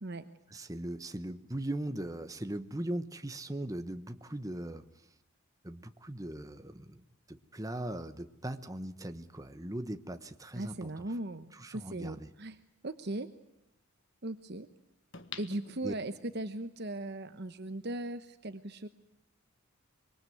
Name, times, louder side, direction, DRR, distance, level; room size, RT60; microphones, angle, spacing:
voice 1, 0.5-4.8 5.6-7.0 7.3-11.1 11.5-12.3 15.8-15.9, right 1 dB, 15° right, 9 dB, 1.1 m, -39 dB
voice 2, 10.5-12.6 12.8-13.3 14.2-14.7 15.4-18.9, right 2 dB, 50° right, 10 dB, 1.0 m, -38 dB
sound 1, 15.1-16.5 17.0-17.1, left 6 dB, 60° left, 1.7 m, -47 dB
25.0 x 23.0 x 9.3 m, 0.83 s
head